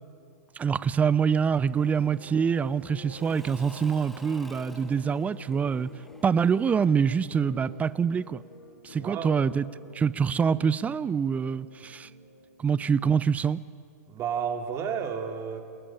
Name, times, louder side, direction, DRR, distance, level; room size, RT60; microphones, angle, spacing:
voice 1, 0.6-5.9 6.2-8.4 8.8-9.6 9.9-12.1 12.6-13.6, right 6 dB, 15° right, 0.7 m, -25 dB
sound 1, 1.4-13.2, left 3 dB, 90° left, 5.9 m, -50 dB
Engine / Mechanisms / Drill, 1.5-8.2, left 1 dB, 5° left, 1.7 m, -52 dB
voice 2, 9.0-9.4 14.1-15.6, right 7 dB, 30° right, 3.1 m, -31 dB
28.0 x 19.0 x 8.9 m
hypercardioid pair, 115°, 9 cm